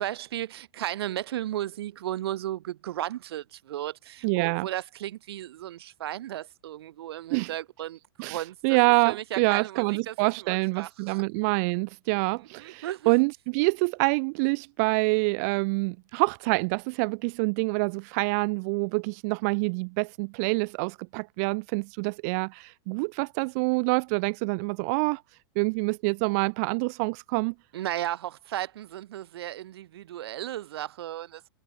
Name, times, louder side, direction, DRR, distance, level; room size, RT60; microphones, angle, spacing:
voice 1, 0.0-8.8 9.0-11.2 12.4-13.1 27.7-31.5, right 13 dB, 65° right, 5.7 m, -35 dB
voice 2, 4.2-4.7 7.3-7.5 8.2-25.2 25.6-27.5, right 32 dB, 35° right, 2.1 m, -26 dB
supercardioid pair, 175°, 14 cm